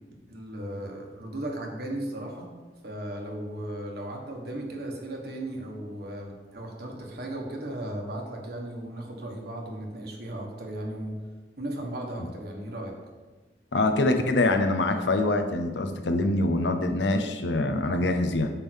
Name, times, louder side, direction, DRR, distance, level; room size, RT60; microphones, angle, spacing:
voice 1, 0.3-2.5 2.8-11.2 11.6-13.0, right 1 dB, 60° right, 0 dB, 1.5 m, -36 dB
voice 2, 13.7-18.5, left 2 dB, 80° left, 6 dB, 0.8 m, -24 dB
8.8 x 3.7 x 6.3 m, 1.3 s
head